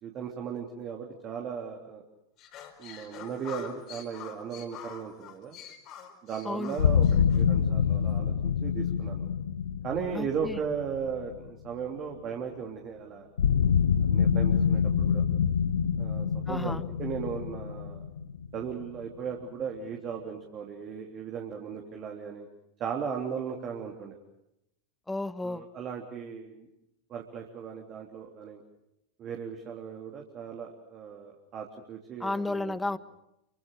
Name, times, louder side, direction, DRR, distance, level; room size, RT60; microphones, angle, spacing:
voice 1, 0.0-2.0 2.8-5.6 6.2-7.0 7.3-9.2 9.8-13.3 14.0-15.2 16.0-18.0 18.5-22.5 22.8-24.1 25.4-26.7 27.1-28.6 29.2-32.7, right 7 dB, 35° right, 1 dB, 3.3 m, -37 dB
sound 1, 2.4-7.4, left 8 dB, 40° left, 4.7 m, -46 dB
voice 2, 6.4-6.8 10.1-10.6 16.5-16.8 25.1-25.6 32.2-33.0, left 2 dB, 5° left, 17 dB, 1.1 m, -32 dB
sound 2, 6.8-11.7 13.4-19.0, left 7 dB, 70° left, 1.1 m, -26 dB
28.5 x 25.0 x 6.7 m, 0.83 s
figure-of-eight pair, 90°, 0 cm